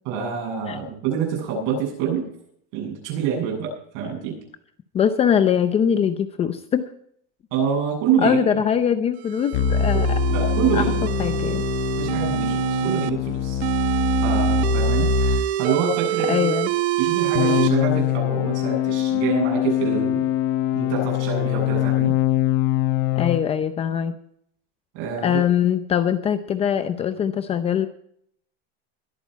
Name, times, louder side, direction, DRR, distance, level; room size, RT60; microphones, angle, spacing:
voice 1, 0.0-2.3 2.7-4.4 7.5-8.4 9.9-11.0 12.0-13.9 14.2-16.5 17.0-20.2 20.7-22.1 24.9-25.4, right 6 dB, 55° right, 0 dB, 7.9 m, -26 dB
voice 2, 4.9-6.8 8.2-10.1 10.7-11.6 16.3-16.7 23.2-24.2 25.2-27.9, left 8 dB, 20° left, 10 dB, 0.6 m, -22 dB
sound 1, 9.2-13.1 13.6-17.7, right 15 dB, 90° right, 1.0 m, -26 dB
sound 2, 9.5-15.5 17.3-23.5, left 9 dB, 50° left, 1.1 m, -23 dB
22.0 x 8.7 x 4.6 m, 0.68 s
cardioid pair, 175°, 31 cm